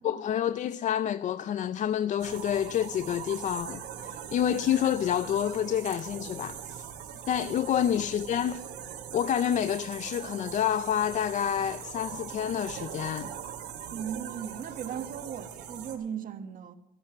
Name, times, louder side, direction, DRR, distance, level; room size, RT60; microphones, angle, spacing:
voice 1, 0.0-6.9 7.3-8.6 9.1-13.3, left 10 dB, 45° left, 0.4 m, -28 dB
sound 1, 2.2-16.0, right 8 dB, 80° right, 2.0 m, -41 dB
voice 2, 13.9-16.7, right 8 dB, 55° right, 1.2 m, -37 dB
12.5 x 11.5 x 6.3 m
cardioid pair, 110°, 17 cm